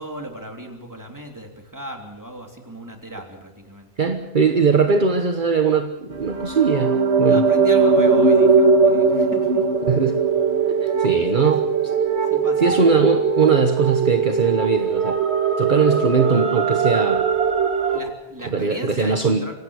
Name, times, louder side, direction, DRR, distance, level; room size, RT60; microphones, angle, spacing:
voice 1, 0.0-3.9 6.7-6.9 7.2-9.7 10.9-11.5 12.2-12.9 17.9-19.6, right 1 dB, 15° right, 2 dB, 3.2 m, -37 dB
voice 2, 4.0-7.4 9.9-10.2 10.8-11.6 12.6-15.2 15.6-17.2 18.5-19.4, right 5 dB, 50° right, 6 dB, 1.4 m, -20 dB
sound 1, 6.2-18.0, right 5 dB, 85° right, 2.0 m, -19 dB
25.0 x 18.0 x 6.5 m, 0.90 s
omnidirectional pair, 1.1 m